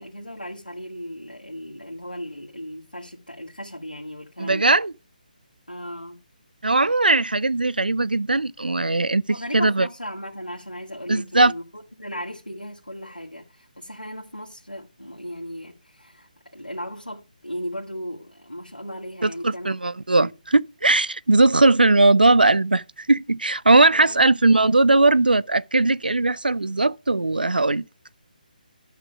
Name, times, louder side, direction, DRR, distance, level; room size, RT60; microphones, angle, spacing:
voice 1, 0.0-4.7 5.7-6.2 9.3-19.7 20.1-20.3 23.9-24.2, equal, 90° left, 1.9 m, -36 dB
voice 2, 4.4-4.9 6.6-9.3 9.5-9.9 11.1-11.5 19.2-27.8, right 2 dB, 75° right, 0.5 m, -19 dB
11.5 x 6.0 x 4.9 m
figure-of-eight pair, 145°, 5 cm